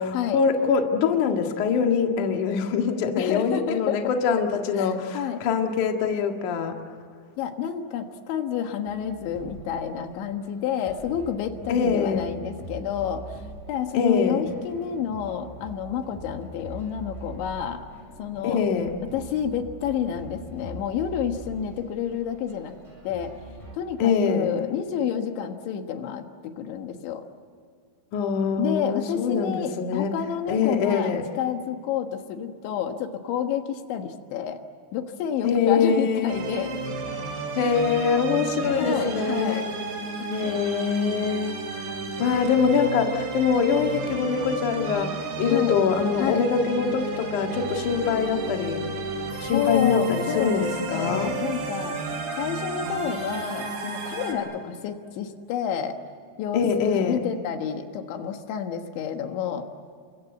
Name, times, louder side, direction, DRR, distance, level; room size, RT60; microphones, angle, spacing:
voice 1, 0.0-6.8 11.7-12.2 13.9-14.4 18.4-18.9 24.0-24.5 28.1-30.1 30.5-31.2 35.4-36.3 37.6-39.7 40.3-41.6 41.9-48.8 49.4-51.3 56.5-57.2, left 6 dB, 55° left, 3 dB, 2.9 m, -24 dB
voice 2, 3.2-4.0 4.8-5.4 7.4-17.9 18.2-18.7 19.1-22.8 23.0-23.3 23.7-27.2 28.6-34.6 34.9-36.8 38.8-39.7 40.4-40.6 45.4-45.8 46.2-46.5 49.5-52.0 52.4-56.0 56.4-59.7, left 8 dB, 80° left, 6 dB, 3.8 m, -29 dB
sound 1, 8.9-23.8, right 1 dB, 5° left, 6.9 m, -43 dB
sound 2, 36.3-54.3, right 3 dB, 65° right, 5.3 m, -32 dB
29.0 x 24.5 x 8.1 m, 2.2 s
omnidirectional pair, 5.2 m